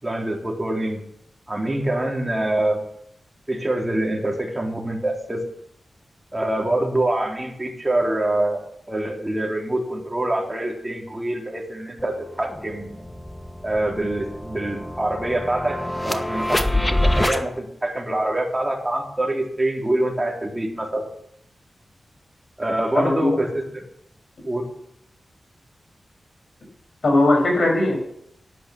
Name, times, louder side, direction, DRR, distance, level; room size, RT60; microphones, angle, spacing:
voice 1, 0.0-1.0 1.5-2.8 3.5-5.4 6.3-13.0 13.6-21.1 22.6-23.8 24.5-24.6, right 1 dB, 20° right, 0 dB, 3.5 m, -25 dB
sound 1, 12.0-12.1 12.4-17.4, left 1 dB, 15° left, 1.3 m, -26 dB
voice 2, 22.9-23.4 27.0-28.0, left 2 dB, 65° left, 2 dB, 5.5 m, -18 dB
11.5 x 9.3 x 7.2 m, 0.72 s
cardioid pair, 65°, 0 cm